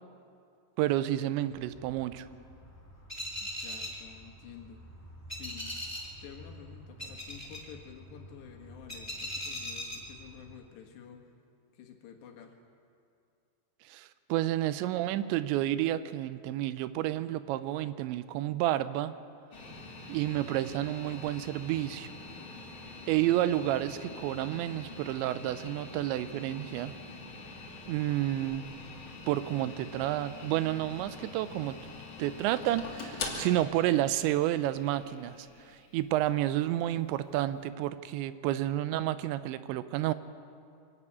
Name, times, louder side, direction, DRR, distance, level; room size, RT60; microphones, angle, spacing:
voice 1, 0.8-2.3 13.9-19.1 20.1-22.1 23.1-26.9 27.9-28.7 29.3-31.8 32.2-35.4 35.7-40.1, right 14 dB, 85° right, 13 dB, 3.0 m, -30 dB
sound 1, 1.5-10.6, equal, 5° left, 1.1 m, -42 dB
voice 2, 3.4-4.9 5.3-5.8 6.2-11.2 11.7-12.6, left 8 dB, 75° left, 2 dB, 3.8 m, -50 dB
sound 2, 19.5-37.6, left 3 dB, 30° left, 2.4 m, -45 dB
25.0 x 12.0 x 8.7 m, 2.4 s
omnidirectional pair, 5.1 m